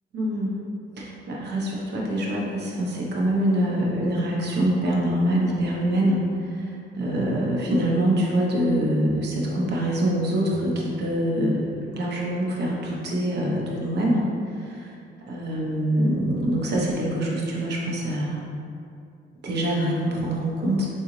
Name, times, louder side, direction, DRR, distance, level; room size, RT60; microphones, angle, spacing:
voice 1, 0.1-0.6 1.0-6.2 6.5-6.6 7.0-14.3 14.7-14.9 15.3-18.4 19.4-20.9, right 1 dB, 60° right, -3 dB, 0.9 m, -24 dB
4.1 x 3.8 x 3.1 m, 2.4 s
cardioid pair, 90°, 20 cm